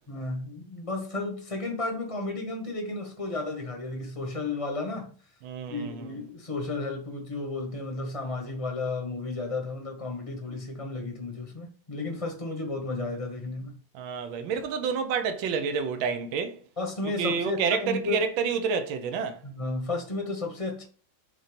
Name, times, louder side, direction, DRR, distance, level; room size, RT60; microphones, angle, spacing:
voice 1, 0.1-5.1 5.7-13.8 16.8-18.3 19.4-20.8, left 3 dB, 20° left, 1.1 m, -33 dB
voice 2, 5.4-6.1 13.9-16.6 17.2-19.4, right 6 dB, 70° right, 1.6 m, -29 dB
5.8 x 3.9 x 5.1 m
omnidirectional pair, 2.3 m